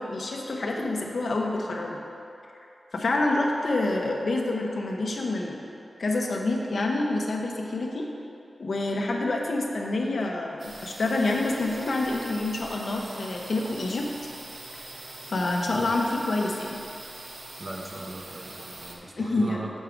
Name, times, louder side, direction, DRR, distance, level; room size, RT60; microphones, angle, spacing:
voice 1, 0.0-2.0 2.9-5.6 6.0-8.1 8.6-14.1 15.3-16.8 19.2-19.6, left 2 dB, 70° left, 0 dB, 0.8 m, -27 dB
sound 1, 10.6-19.0, right 2 dB, 70° right, 0.8 m, -43 dB
voice 2, 17.6-19.7, right 2 dB, 45° right, -1 dB, 1.0 m, -38 dB
7.2 x 4.6 x 5.2 m, 2.7 s
wide cardioid pair, 70°, 0 cm